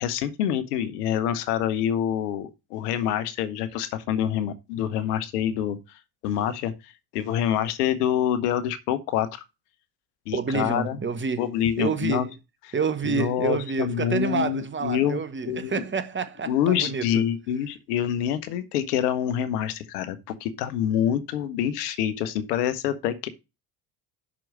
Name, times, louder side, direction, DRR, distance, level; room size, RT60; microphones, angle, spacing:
voice 1, 0.0-5.8 6.2-9.4 10.3-11.0 11.4-12.3 13.1-15.7 16.4-23.3, left 10 dB, 85° left, 1.0 m, -26 dB
voice 2, 10.3-11.5 11.8-12.3 12.7-17.2, right 5 dB, 25° right, 1.0 m, -28 dB
6.2 x 4.6 x 6.2 m
hypercardioid pair, 70°, 45 cm